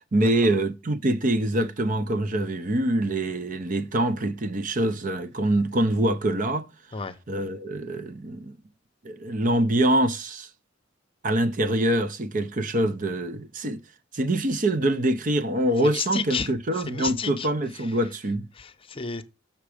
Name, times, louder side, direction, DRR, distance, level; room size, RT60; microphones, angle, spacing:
voice 1, 0.1-6.7 7.3-8.6 9.0-10.5 11.2-13.8 14.1-18.5, right 1 dB, 45° right, 0.7 m, -24 dB
voice 2, 15.9-16.5 16.9-17.5 18.6-19.2, left 5 dB, 30° left, 0.7 m, -31 dB
7.3 x 6.0 x 4.9 m
head